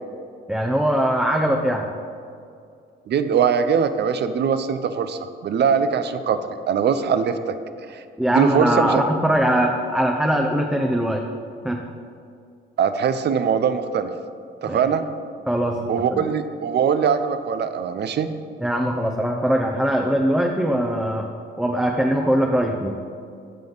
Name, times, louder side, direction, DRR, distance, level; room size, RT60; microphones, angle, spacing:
voice 1, 0.5-1.9 8.2-11.2 11.6-11.9 14.6-14.8 15.5-16.2 18.6-21.3 21.6-23.0, equal, 5° right, 1 dB, 0.7 m, -21 dB
voice 2, 3.1-6.4 6.7-7.5 7.9-8.0 8.3-9.0 12.8-14.1 14.6-15.0 15.9-18.3, right 7 dB, 60° right, 10 dB, 0.7 m, -21 dB
15.5 x 5.3 x 4.0 m, 2.4 s
cardioid pair, 90°, 20 cm